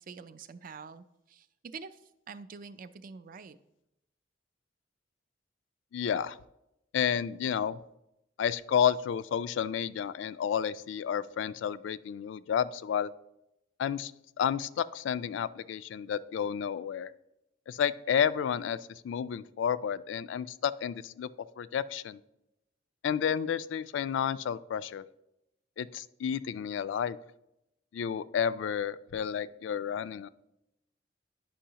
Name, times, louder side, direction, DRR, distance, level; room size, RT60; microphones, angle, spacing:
voice 1, 0.0-3.6, right 5 dB, 45° right, 12 dB, 0.4 m, -46 dB
voice 2, 5.9-6.4 6.9-7.8 8.4-13.1 13.8-14.1 14.4-17.1 17.7-18.8 19.0-21.3 21.6-22.2 23.0-25.0 25.8-27.2 27.9-30.3, left 8 dB, 75° left, 15 dB, 0.3 m, -31 dB
10.0 x 5.4 x 2.9 m, 0.87 s
head